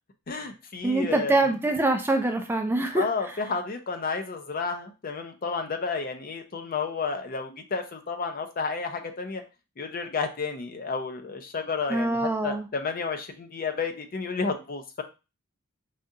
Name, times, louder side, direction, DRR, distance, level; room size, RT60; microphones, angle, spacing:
voice 1, 0.3-1.4 2.9-9.4 9.8-15.0, left 4 dB, 40° left, 6 dB, 0.5 m, -31 dB
voice 2, 0.8-3.4 11.9-12.7, right 2 dB, 10° right, 4 dB, 0.3 m, -25 dB
4.9 x 2.4 x 2.7 m, 0.30 s
head